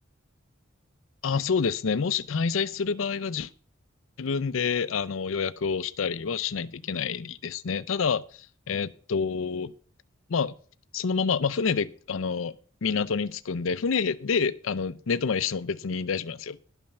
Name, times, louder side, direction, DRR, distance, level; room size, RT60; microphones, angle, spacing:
voice 1, 1.2-3.5 4.2-9.7 10.3-10.5 10.9-12.5 12.8-16.6, left 5 dB, 85° left, 0.6 m, -28 dB
11.5 x 5.5 x 6.8 m
head